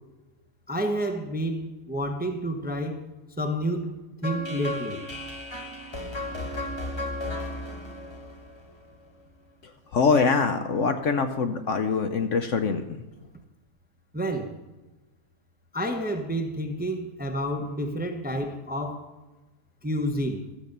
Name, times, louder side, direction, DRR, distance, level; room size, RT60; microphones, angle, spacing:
voice 1, 0.7-3.0 3.4-4.0 4.2-5.0 14.1-14.6 15.7-19.1 19.8-20.4, equal, 10° right, 0.7 m, -29 dB
sound 1, 4.2-9.2, left 1 dB, 20° left, 1.3 m, -35 dB
voice 2, 9.9-12.8, left 5 dB, 60° left, 1.0 m, -23 dB
13.0 x 7.0 x 6.7 m
omnidirectional pair, 1.7 m